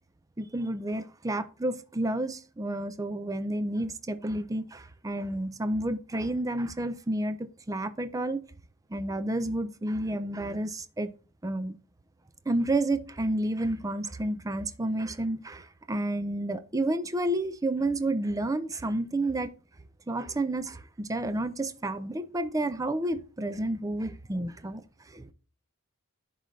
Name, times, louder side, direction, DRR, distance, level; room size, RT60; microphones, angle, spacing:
voice 1, 0.4-8.4 8.9-11.1 11.4-11.7 12.5-19.5 20.1-24.8 25.1-25.3, right 1 dB, 15° right, 0.5 m, -30 dB
10.5 x 3.9 x 3.1 m
head